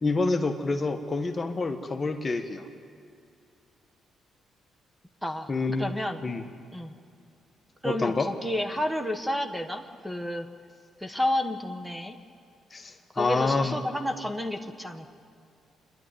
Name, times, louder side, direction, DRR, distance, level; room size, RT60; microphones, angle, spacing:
voice 1, 0.0-2.6 5.5-5.9 6.2-6.4 7.8-8.3 12.7-13.8, left 3 dB, 30° left, 5 dB, 1.3 m, -27 dB
voice 2, 5.8-6.2 6.7-6.9 7.8-10.5 11.0-12.2 13.2-15.1, left 1 dB, ahead, 6 dB, 1.4 m, -30 dB
26.5 x 11.5 x 9.4 m, 2.4 s
cardioid pair, 90°, 0 cm